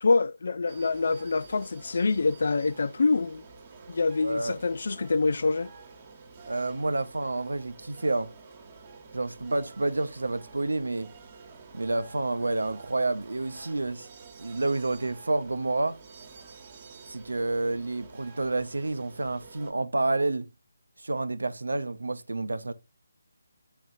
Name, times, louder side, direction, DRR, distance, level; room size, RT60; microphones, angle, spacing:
voice 1, 0.0-3.4 3.9-5.7, left 3 dB, 60° left, 0.3 m, -26 dB
sound 1, 0.7-19.7, right 4 dB, 25° right, 1.3 m, -49 dB
voice 2, 4.2-4.6 6.5-8.3 9.1-11.1 11.7-14.1 14.4-16.0 17.1-20.5 21.0-22.7, right 2 dB, 80° right, 0.6 m, -29 dB
9.0 x 4.1 x 2.6 m
figure-of-eight pair, 155°, 0 cm